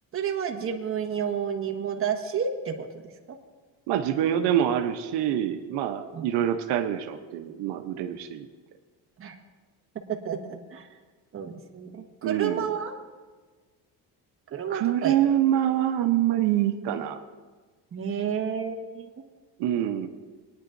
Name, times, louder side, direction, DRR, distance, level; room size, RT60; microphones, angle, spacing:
voice 1, 0.1-2.9 6.1-6.3 9.2-9.3 10.1-10.9 11.3-12.9 14.5-15.2 17.9-19.1, right 7 dB, 35° right, 2 dB, 1.4 m, -30 dB
voice 2, 3.9-8.5 12.2-12.7 14.7-17.2 19.6-20.1, right 11 dB, 85° right, 5 dB, 0.9 m, -25 dB
22.0 x 10.0 x 2.6 m, 1.4 s
cardioid pair, 145°, 39 cm